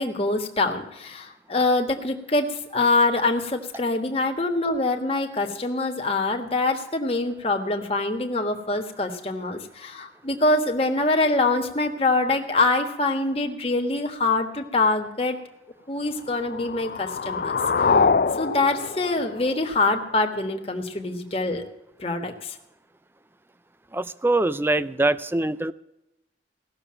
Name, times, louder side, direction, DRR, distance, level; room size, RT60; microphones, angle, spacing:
voice 1, 0.0-15.4 15.9-17.6 18.4-21.6 22.0-22.6, left 2 dB, 30° left, 3 dB, 1.4 m, -24 dB
sound 1, 16.3-20.3, left 5 dB, 50° left, 0.5 m, -25 dB
voice 2, 23.9-25.7, right 2 dB, 10° right, 15 dB, 0.4 m, -23 dB
16.5 x 6.9 x 8.6 m, 0.91 s
head